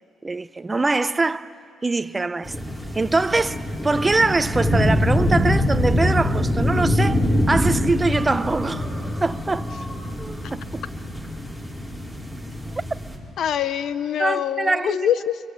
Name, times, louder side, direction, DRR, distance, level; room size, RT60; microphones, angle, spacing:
voice 1, 0.2-1.5 1.8-2.5 2.9-7.2 7.5-8.9 9.2-9.7 10.5-10.8 14.2-15.0, right 3 dB, 20° right, 0.7 m, -23 dB
sound 1, 2.4-13.2, left 1 dB, 5° left, 5.4 m, -24 dB
voice 2, 13.4-15.4, left 9 dB, 70° left, 0.9 m, -24 dB
24.0 x 23.5 x 8.2 m
cardioid pair, 90°, 0 cm